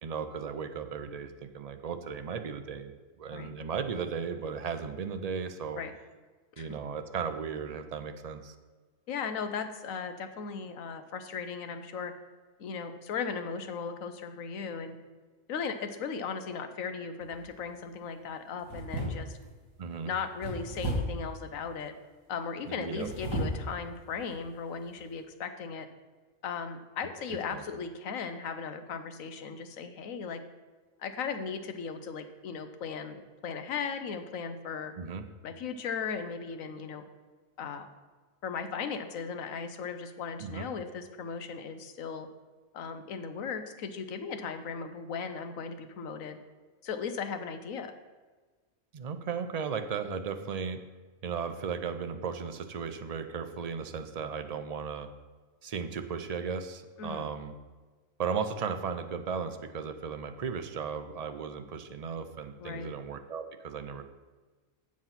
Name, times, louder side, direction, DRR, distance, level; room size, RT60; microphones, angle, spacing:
voice 1, 0.0-2.9 3.2-5.8 6.6-8.5 19.8-20.1 22.7-23.1 27.3-27.6 35.0-35.2 40.4-40.7 48.9-50.8 51.2-55.1 55.6-57.5 58.2-64.0, right 6 dB, 45° right, 8 dB, 0.5 m, -36 dB
voice 2, 9.1-12.1 12.6-15.0 15.5-19.4 20.0-21.9 22.3-25.9 26.4-30.4 31.0-34.9 35.4-37.0 37.6-37.9 38.4-42.3 42.7-46.4 46.8-47.9 57.0-57.3 62.6-62.9, left 6 dB, 85° left, 9 dB, 1.2 m, -37 dB
sound 1, 17.2-17.6 18.6-19.5 20.4-21.3 22.8-23.7 24.2-24.3 24.9-25.0, equal, 15° right, 2.5 m, -34 dB
7.7 x 7.4 x 5.7 m, 1.4 s
omnidirectional pair, 1.4 m